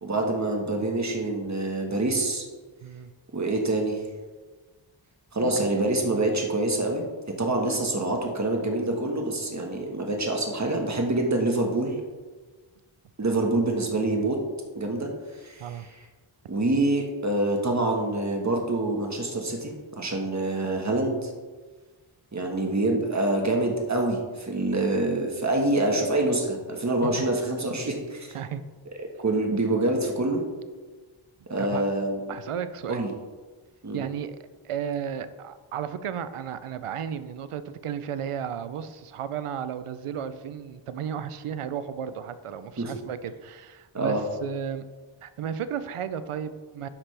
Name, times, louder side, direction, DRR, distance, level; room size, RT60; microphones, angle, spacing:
voice 1, 0.0-2.4 3.3-4.0 5.3-7.0 7.4-12.0 13.2-14.4 14.7-15.9 16.5-21.3 22.3-28.3 29.2-30.4 31.5-32.3 32.9-33.1 33.8-34.0 42.8-42.9 43.9-44.2, right 2 dB, 35° right, 1 dB, 1.5 m, -26 dB
voice 2, 32.3-33.0 33.9-34.4 34.6-44.8 45.2-46.9, right 8 dB, 90° right, 12 dB, 0.6 m, -34 dB
10.0 x 5.9 x 3.3 m, 1.3 s
wide cardioid pair, 60°, 50 cm